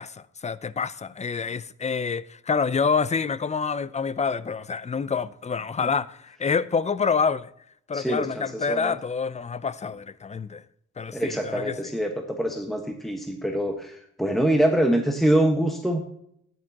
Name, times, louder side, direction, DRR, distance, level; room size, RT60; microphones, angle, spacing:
voice 1, 0.0-7.5 7.9-10.6 11.0-11.9, left 5 dB, 25° left, 0.5 m, -27 dB
voice 2, 7.9-9.0 11.1-16.0, right 1 dB, ahead, 1.4 m, -24 dB
13.5 x 11.0 x 2.9 m
cardioid pair, 90°, 30 cm